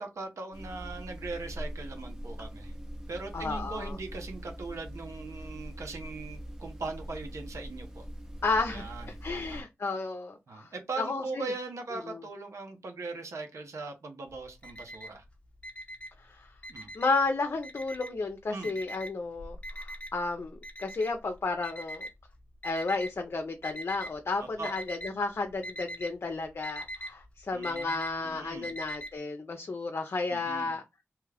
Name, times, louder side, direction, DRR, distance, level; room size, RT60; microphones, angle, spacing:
voice 1, 0.0-2.7 3.1-8.0 8.7-9.6 10.5-15.2 16.7-16.9 18.5-18.7 24.6-24.7 27.5-28.7 30.3-30.7, right 3 dB, 80° right, 0.8 m, -40 dB
sound 1, 0.5-9.6, equal, 15° right, 0.7 m, -42 dB
voice 2, 3.3-4.0 8.4-8.9 9.2-10.7 11.0-11.5 12.0-12.2 16.2-16.5 16.9-22.0 22.6-30.8, left 3 dB, 55° left, 0.5 m, -32 dB
Alarm, 14.3-15.3 15.6-17.2 17.6-18.3 18.6-23.1 23.6-24.2 24.5-25.2 25.4-29.1, equal, 25° left, 0.9 m, -41 dB
3.0 x 2.3 x 3.3 m
wide cardioid pair, 80°, 5 cm